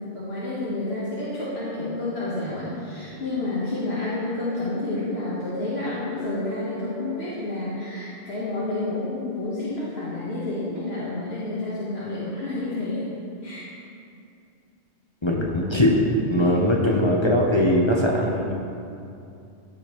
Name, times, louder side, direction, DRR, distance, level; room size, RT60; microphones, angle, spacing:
voice 1, 0.0-13.1 13.4-13.6 16.4-16.5, left 2 dB, 60° left, -9 dB, 1.6 m, -29 dB
voice 2, 15.2-16.0 16.3-18.6, left 1 dB, 30° left, -3 dB, 0.7 m, -21 dB
14.5 x 5.1 x 3.0 m, 2.6 s
omnidirectional pair, 1.2 m